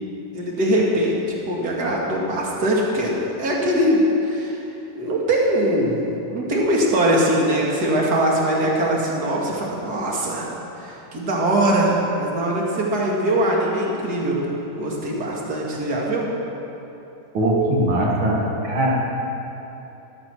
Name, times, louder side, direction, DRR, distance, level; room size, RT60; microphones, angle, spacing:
voice 1, 0.3-4.6 4.9-6.0 6.3-10.5 10.8-14.4 14.8-16.3, right 1 dB, 55° right, -3 dB, 2.6 m, -21 dB
voice 2, 17.3-18.9, right 1 dB, 85° right, -2 dB, 2.7 m, -20 dB
13.5 x 13.0 x 6.2 m, 2.9 s
omnidirectional pair, 2.1 m